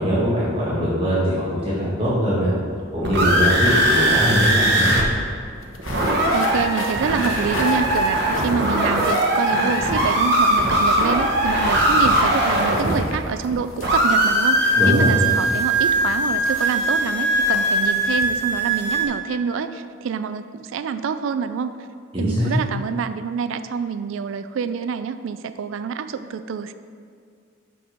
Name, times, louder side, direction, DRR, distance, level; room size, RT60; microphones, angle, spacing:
voice 1, 0.0-2.5 2.9-4.9 14.7-15.2 22.1-22.6, equal, 25° right, -9 dB, 1.6 m, -21 dB
sound 1, 2.8-5.0 5.3-5.4 5.7-13.5 13.8-19.1, right 1 dB, 55° right, 1.1 m, -20 dB
sound 2, 4.9-19.0, left 2 dB, 90° left, 0.8 m, -38 dB
voice 2, 6.3-21.8 22.2-26.7, right 6 dB, 75° right, 11 dB, 0.3 m, -27 dB
6.1 x 6.0 x 5.1 m, 2.2 s
head